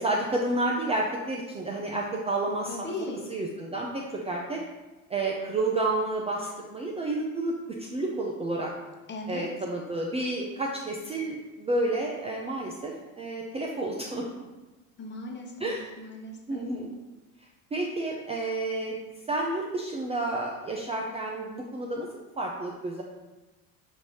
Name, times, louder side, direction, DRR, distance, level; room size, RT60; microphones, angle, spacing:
voice 1, 0.0-2.8 3.3-4.6 5.1-8.7 9.3-14.3 15.6-15.9 16.5-16.9 17.7-19.0 19.3-22.1 22.4-23.0, right 2 dB, 15° right, -2 dB, 0.5 m, -30 dB
voice 2, 2.7-3.2 9.1-9.5 15.0-16.7, left 2 dB, 25° left, 0 dB, 1.0 m, -38 dB
6.3 x 2.6 x 3.0 m, 1.2 s
hypercardioid pair, 75°, 42 cm